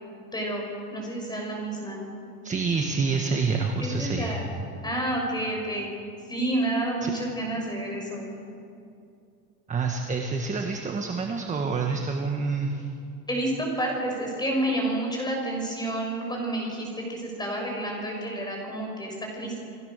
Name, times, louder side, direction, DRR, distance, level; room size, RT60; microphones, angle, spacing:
voice 1, 0.3-0.6 0.9-2.0 3.8-4.5 4.8-5.9 6.3-8.2 13.3-19.6, right 1 dB, 10° left, 0 dB, 6.6 m, -29 dB
voice 2, 2.4-4.4 7.0-7.1 9.7-12.9, right 4 dB, 15° right, 2 dB, 1.5 m, -27 dB
29.5 x 20.5 x 6.8 m, 2.6 s
supercardioid pair, 145°, 46 cm